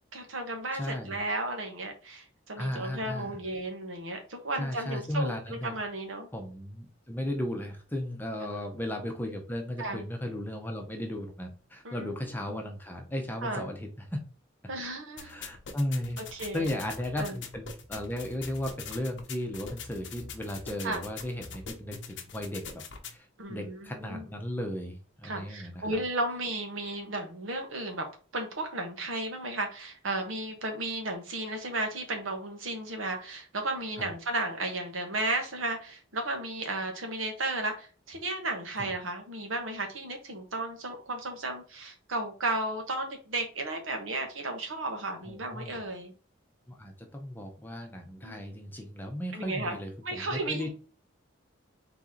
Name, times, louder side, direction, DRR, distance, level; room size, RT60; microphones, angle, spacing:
voice 1, 0.1-6.3 8.4-8.6 9.8-10.0 11.8-12.1 12.5-12.6 13.4-13.7 14.7-15.4 16.3-16.8 17.2-17.3 20.8-21.0 23.4-24.2 25.2-28.1 28.3-46.1 48.2-48.4 49.3-49.8 50.0-50.7, right 2 dB, 80° right, 1.1 m, -34 dB
voice 2, 0.7-1.2 2.6-3.4 4.6-5.8 6.3-14.2 15.2-16.2 16.5-22.8 23.1-26.0 34.0-34.1 38.8-38.9 45.2-45.8 46.7-50.7, left 1 dB, 10° left, 0.7 m, -35 dB
sound 1, 15.2-23.2, left 5 dB, 65° left, 0.7 m, -44 dB
4.0 x 2.9 x 3.8 m
head